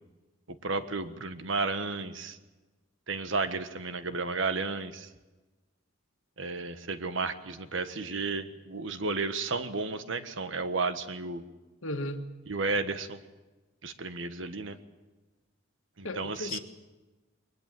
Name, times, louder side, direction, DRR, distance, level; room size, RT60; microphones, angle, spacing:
voice 1, 0.6-2.4 3.1-5.1 6.4-11.4 12.5-13.2 13.8-14.8 16.0-16.6, right 3 dB, 65° right, 10 dB, 1.4 m, -32 dB
voice 2, 11.8-12.2 16.0-16.6, left 2 dB, 75° left, 6 dB, 1.9 m, -35 dB
22.5 x 20.0 x 7.6 m, 1.2 s
head